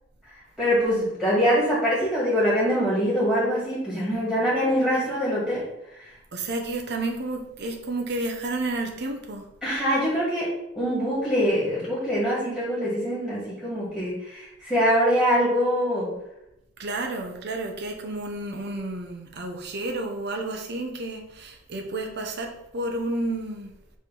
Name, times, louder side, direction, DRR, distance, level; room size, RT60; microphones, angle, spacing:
voice 1, 0.6-5.7 6.0-6.1 9.6-16.2, equal, 5° left, -8 dB, 2.1 m, -24 dB
voice 2, 6.3-9.4 16.8-23.7, right 2 dB, 60° right, 3 dB, 0.8 m, -31 dB
5.4 x 3.4 x 5.4 m, 0.84 s
head